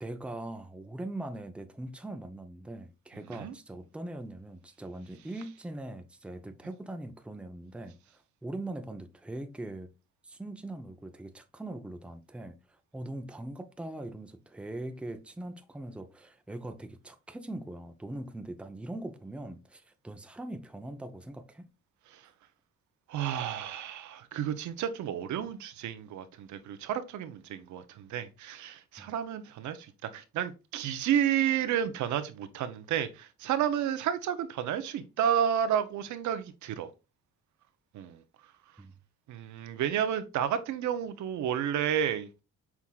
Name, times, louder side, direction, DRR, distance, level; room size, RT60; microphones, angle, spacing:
voice 1, 0.0-9.9 10.2-21.7 29.0-29.1 38.8-38.9, right 1 dB, 5° right, 0.5 m, -41 dB
voice 2, 23.1-36.9 37.9-38.2 39.3-42.3, right 9 dB, 75° right, 0.6 m, -31 dB
5.8 x 3.5 x 2.3 m
cardioid pair, 90°, 30 cm